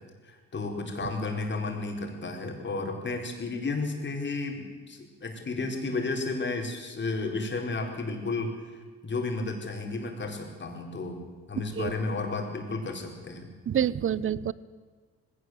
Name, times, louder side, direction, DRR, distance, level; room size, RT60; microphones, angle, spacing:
voice 1, 0.2-8.6 9.0-11.2 11.5-13.5, left 3 dB, 40° left, 2 dB, 4.5 m, -32 dB
voice 2, 13.7-14.5, right 9 dB, 45° right, 20 dB, 0.8 m, -27 dB
20.0 x 17.0 x 8.0 m, 1.5 s
cardioid pair, 90°, 30 cm